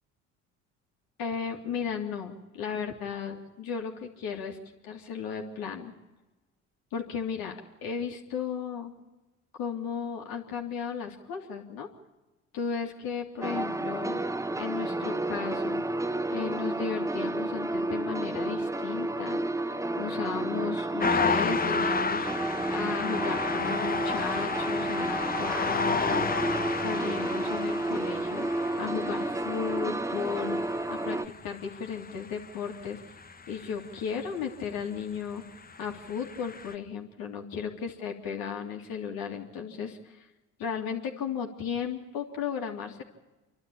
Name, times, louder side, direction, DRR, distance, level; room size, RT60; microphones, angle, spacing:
voice 1, 1.2-4.6 4.8-5.9 6.9-8.9 9.6-11.9 12.5-14.2 14.6-15.8 16.3-19.4 20.0-26.3 26.8-28.4 28.8-30.6 30.9-33.0 33.5-35.4 35.8-40.3 40.6-43.0, left 6 dB, 70° left, 2 dB, 3.3 m, -35 dB
sound 1, 13.4-31.3, right 2 dB, 10° right, 0.6 m, -31 dB
sound 2, 21.0-34.2 35.2-36.7, left 5 dB, 25° left, 1.1 m, -32 dB
28.0 x 12.0 x 8.8 m, 1.1 s
hypercardioid pair, 65°, 37 cm